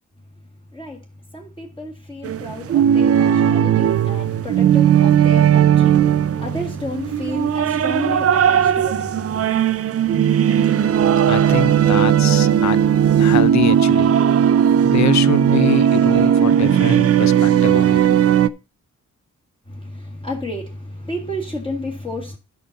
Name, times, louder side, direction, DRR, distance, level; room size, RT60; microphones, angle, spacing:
voice 1, 0.7-1.0 1.3-9.5 19.7-22.4, left 1 dB, 15° left, 1.9 m, -31 dB
sound 1, 2.2-18.5, right 9 dB, 50° right, 0.5 m, -16 dB
voice 2, 11.3-12.8 13.2-14.1 14.8-18.0, left 9 dB, 60° left, 0.6 m, -25 dB
12.0 x 5.7 x 4.0 m
wide cardioid pair, 110°, 31 cm